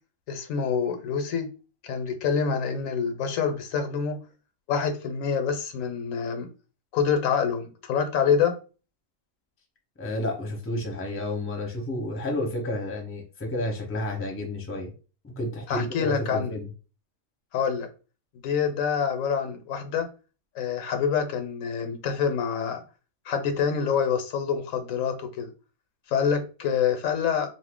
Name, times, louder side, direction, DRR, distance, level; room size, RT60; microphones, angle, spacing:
voice 1, 0.3-1.5 1.8-4.2 4.7-6.5 6.9-8.6 15.7-16.5 17.5-17.9 18.4-20.1 20.5-22.8 23.3-25.5 26.1-27.5, left 6 dB, 75° left, 7 dB, 1.0 m, -26 dB
voice 2, 10.0-14.9 15.2-16.7, left 1 dB, 15° left, 1 dB, 0.6 m, -31 dB
2.7 x 2.5 x 3.5 m, 0.34 s
omnidirectional pair, 1.4 m